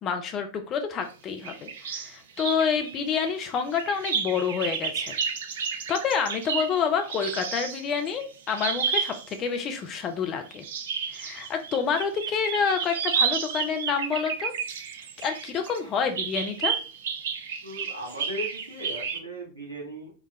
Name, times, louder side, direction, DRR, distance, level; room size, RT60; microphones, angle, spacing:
voice 1, 0.0-5.1 5.9-10.6 11.1-14.5 15.2-16.8, left 6 dB, 30° left, 5 dB, 0.6 m, -28 dB
sound 1, 1.4-2.1 2.4-9.4 10.5-15.8 16.2-19.2, right 6 dB, 60° right, 0.5 m, -31 dB
voice 2, 17.6-20.1, equal, 75° right, -2 dB, 1.5 m, -37 dB
4.5 x 2.3 x 3.2 m, 0.36 s
figure-of-eight pair, 90°, 0 cm